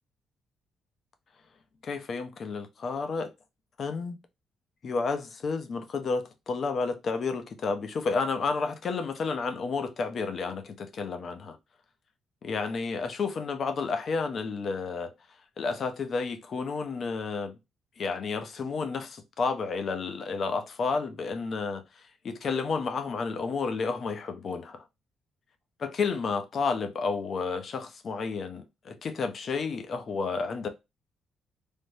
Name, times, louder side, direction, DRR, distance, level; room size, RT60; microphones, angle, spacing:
voice 1, 1.8-3.3 3.8-4.2 4.8-11.6 12.4-15.1 15.6-17.6 18.0-24.8 25.8-30.7, left 4 dB, 40° left, 0.5 m, -31 dB
3.4 x 2.0 x 2.6 m
cardioid pair, 150°, 0 cm